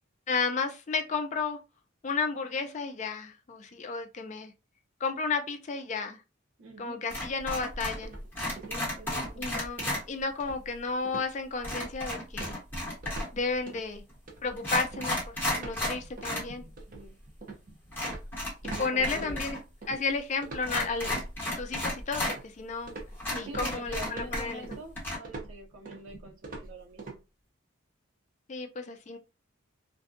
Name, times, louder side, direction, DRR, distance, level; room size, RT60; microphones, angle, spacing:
voice 1, 0.3-1.6 2.0-4.5 5.0-6.2 6.8-8.2 9.4-12.6 13.3-14.0 14.4-16.6 18.8-19.6 19.9-21.2 21.5-22.9 23.3-24.8 28.5-29.2, left 4 dB, 35° left, 0.3 m, -32 dB
voice 2, 6.6-7.0 8.7-9.5 16.9-17.1 18.7-19.4 23.4-27.2, right 1 dB, 75° right, 0.7 m, -45 dB
sound 1, 7.1-8.1 8.3-10.0 11.6-13.4 14.1-14.2 14.6-16.5 16.8-16.9 17.9-19.6 19.8-19.9 20.6-22.4 22.8-22.9 23.2-24.7 24.9-25.2, left 1 dB, 10° left, 1.0 m, -33 dB
sound 2, 8.0-8.9 9.1-9.4 9.8-10.0 10.4-10.8 11.0-11.3 11.7-12.0 12.4-13.4 13.7-13.9 14.3-18.9 19.2-20.0 20.4-21.3 21.7-22.5 22.9-27.2, right 3 dB, 40° right, 0.6 m, -44 dB
2.5 x 2.2 x 2.4 m
head